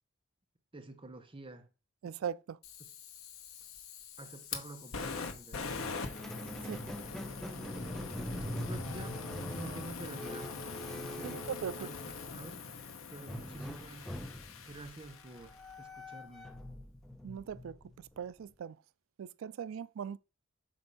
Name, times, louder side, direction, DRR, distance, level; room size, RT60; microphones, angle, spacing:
voice 1, 0.7-1.7 2.0-2.2 4.2-5.6 6.6-6.9 8.3-9.2 9.5-10.6 11.0-11.5 11.8-12.6 13.1-14.1 14.6-16.5, right 2 dB, 25° right, 0.9 m, -49 dB
voice 2, 2.0-2.6 6.6-6.8 11.2-11.9 17.2-18.8 19.2-20.2, right 8 dB, 70° right, 0.3 m, -40 dB
Fire, 2.6-15.7, left 4 dB, 80° left, 0.9 m, -43 dB
Squeak, 6.0-12.3 13.3-18.4, equal, ahead, 0.6 m, -44 dB
7.7 x 2.6 x 5.5 m
head